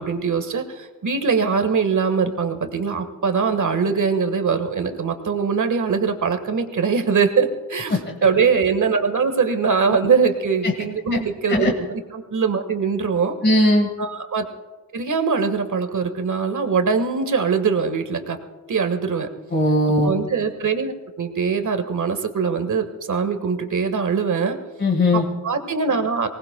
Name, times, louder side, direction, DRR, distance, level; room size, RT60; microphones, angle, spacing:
voice 1, 0.0-13.3 14.0-14.5 14.9-18.4 18.7-19.3 20.0-24.6 25.1-26.3, right 5 dB, 55° right, 7 dB, 1.5 m, -22 dB
voice 2, 13.4-13.9 19.5-20.1 24.8-25.3, left 1 dB, 30° left, 2 dB, 1.6 m, -18 dB
24.5 x 19.0 x 2.2 m, 1.3 s
wide cardioid pair, 100°, 35 cm